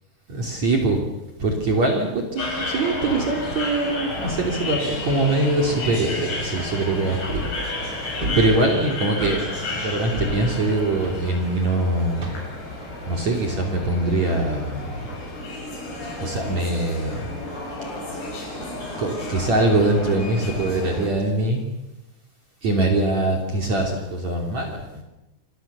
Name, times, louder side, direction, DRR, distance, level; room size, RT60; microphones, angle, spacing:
voice 1, 0.3-1.0 1.4-7.5 8.4-12.4 13.1-15.1 16.2-17.4 19.0-21.6 22.6-25.0, right 2 dB, 40° right, 1 dB, 3.8 m, -23 dB
sound 1, 2.4-21.1, left 2 dB, 45° left, 8.6 m, -32 dB
sound 2, 7.3-7.7 8.2-8.9 9.2-11.7 12.2-12.7 15.3-15.4, right 1 dB, 25° right, 3.6 m, -31 dB
28.0 x 22.0 x 6.9 m, 0.94 s
omnidirectional pair, 5.4 m